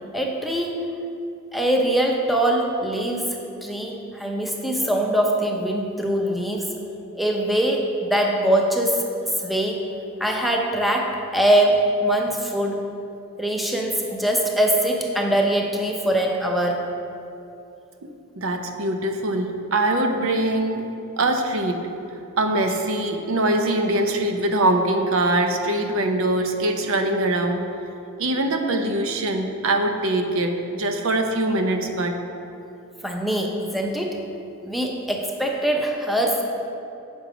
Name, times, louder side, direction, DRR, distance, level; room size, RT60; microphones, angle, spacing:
voice 1, 0.1-1.1 1.5-6.7 7.1-9.0 9.4-9.8 10.2-12.8 13.4-16.9 33.0-34.2 34.6-36.4, right 1 dB, ahead, 0 dB, 0.6 m, -22 dB
voice 2, 18.4-20.9 21.2-21.8 22.4-27.7 28.2-32.1, right 1 dB, 70° right, 5 dB, 0.7 m, -23 dB
7.3 x 6.0 x 4.9 m, 2.8 s
head